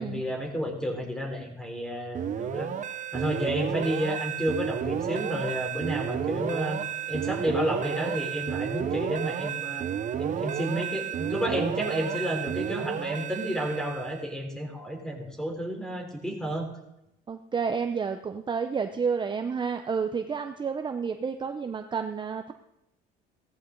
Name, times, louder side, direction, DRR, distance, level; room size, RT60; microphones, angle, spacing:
voice 1, 0.0-2.7 3.1-9.8 10.2-16.7, equal, 5° left, 3 dB, 3.7 m, -31 dB
sound 1, 2.1-14.3, right 9 dB, 45° right, 1.0 m, -32 dB
voice 2, 17.3-22.5, right 6 dB, 25° right, 7 dB, 0.8 m, -30 dB
17.0 x 14.0 x 3.9 m, 0.84 s
cardioid pair, 110°, 17 cm